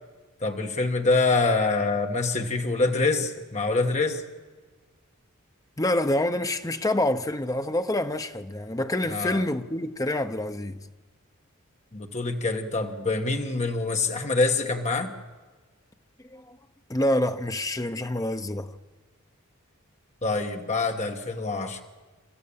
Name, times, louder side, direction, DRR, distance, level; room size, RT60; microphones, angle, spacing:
voice 1, 0.4-4.2 9.1-9.4 11.9-15.1 20.2-21.8, left 3 dB, 35° left, 1.4 m, -25 dB
voice 2, 5.8-10.8 16.3-16.6 16.9-18.7, left 1 dB, 15° left, 0.8 m, -27 dB
28.0 x 13.5 x 8.7 m
head